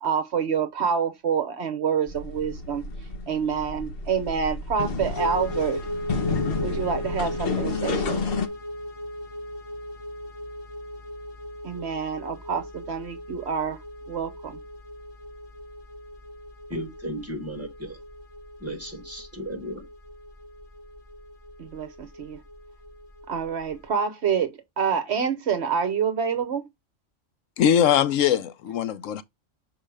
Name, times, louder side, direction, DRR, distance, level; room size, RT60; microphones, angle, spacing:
voice 1, 0.0-2.9 3.3-5.8 6.6-8.3 11.6-13.8 14.1-14.6 21.6-22.4 23.3-26.7, right 6 dB, 60° right, 1.0 m, -27 dB
sound 1, 2.1-8.5, left 4 dB, 50° left, 1.1 m, -30 dB
sound 2, 5.2-23.9, equal, 20° left, 2.3 m, -38 dB
voice 2, 16.7-18.0 18.6-19.9, equal, 10° right, 2.1 m, -35 dB
voice 3, 27.6-29.2, left 9 dB, 80° left, 1.0 m, -21 dB
6.3 x 4.8 x 3.3 m
omnidirectional pair, 1.3 m